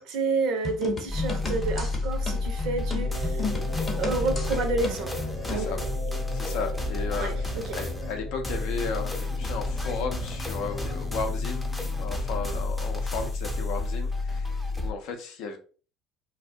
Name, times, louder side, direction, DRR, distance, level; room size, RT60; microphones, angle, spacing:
voice 1, 0.0-3.5 4.0-5.8 7.2-7.8, right 3 dB, 60° right, 0.5 m, -30 dB
sound 1, 0.6-5.7, left 3 dB, 30° left, 0.8 m, -34 dB
sound 2, 1.1-14.9, left 2 dB, 5° left, 0.5 m, -31 dB
sound 3, 3.0-12.5, equal, 85° right, 0.8 m, -40 dB
voice 2, 5.5-5.8 6.3-11.7 12.0-15.6, left 4 dB, 65° left, 0.5 m, -35 dB
2.3 x 2.0 x 2.6 m
hypercardioid pair, 60°, 0 cm